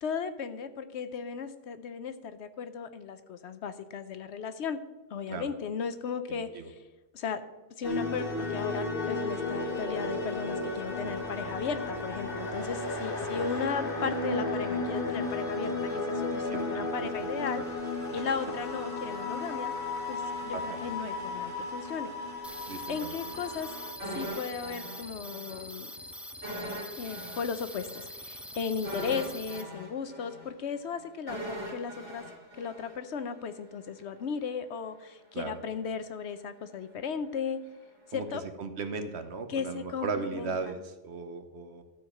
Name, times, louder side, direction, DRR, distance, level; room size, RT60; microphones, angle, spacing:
voice 1, 0.0-4.8 5.1-6.8 7.1-7.4 7.8-17.6 18.1-19.7 20.1-22.1 22.6-23.7 24.1-25.9 27.0-32.2 32.6-37.6 38.1-38.4 39.5-40.8, left 6 dB, 70° left, 11 dB, 1.0 m, -36 dB
voice 2, 6.3-6.7 13.2-13.5 16.5-17.3 17.6-17.7 20.5-20.8 22.7-23.1 35.3-35.6 38.1-38.3 38.6-41.8, right 4 dB, 65° right, 8 dB, 1.2 m, -37 dB
sound 1, 7.8-23.9, left 2 dB, 50° left, 1.8 m, -34 dB
sound 2, 22.4-29.6, equal, ahead, 0.4 m, -44 dB
sound 3, 24.0-25.6 25.9-26.0 26.4-33.5 33.8-33.9, equal, 85° right, 2.9 m, -40 dB
13.0 x 4.7 x 7.6 m, 1.1 s
omnidirectional pair, 1.2 m